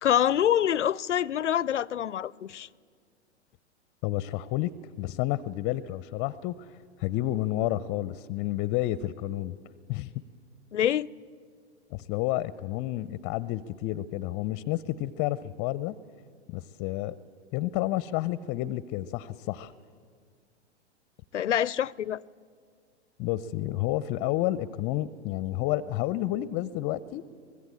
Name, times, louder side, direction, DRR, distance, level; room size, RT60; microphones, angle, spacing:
voice 1, 0.0-2.7 10.7-11.1 21.3-22.2, left 10 dB, 85° left, 0.5 m, -26 dB
voice 2, 4.0-4.7 5.0-9.6 9.9-10.1 11.9-15.9 16.5-17.1 17.5-19.7 23.2-27.2, left 15 dB, 30° left, 0.6 m, -30 dB
24.0 x 20.5 x 8.6 m
hypercardioid pair, 105°, 35 cm